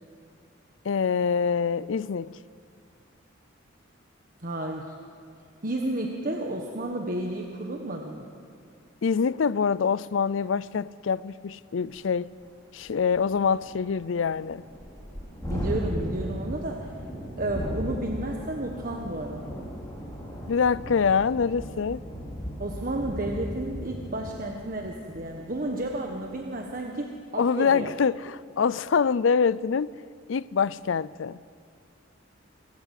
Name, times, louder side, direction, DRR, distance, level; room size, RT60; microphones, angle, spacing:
voice 1, 0.8-2.4 9.0-12.3 12.7-14.6 20.5-22.0 27.4-29.9 30.3-31.4, left 6 dB, 75° left, 0.5 m, -25 dB
voice 2, 4.4-4.9 5.6-8.2 15.5-16.9 17.4-19.5 22.6-27.9, right 1 dB, 45° right, 1.4 m, -32 dB
Thunderstorm, 12.0-12.1 12.4-12.5 12.8-26.4, equal, 20° left, 3.6 m, -37 dB
27.0 x 13.0 x 8.3 m
head